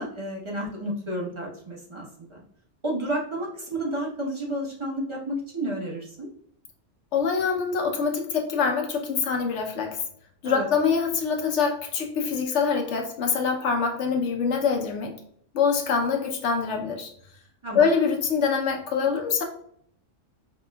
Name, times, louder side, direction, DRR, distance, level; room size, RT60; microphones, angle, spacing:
voice 1, 0.0-2.4 2.8-6.3 10.4-10.7 17.6-17.8, right 1 dB, 25° right, -3 dB, 0.9 m, -31 dB
voice 2, 7.1-10.0 10.4-15.1 15.5-17.1 17.7-19.4, left 5 dB, 65° left, 2 dB, 1.0 m, -24 dB
5.1 x 2.9 x 2.2 m, 0.65 s
omnidirectional pair, 1.3 m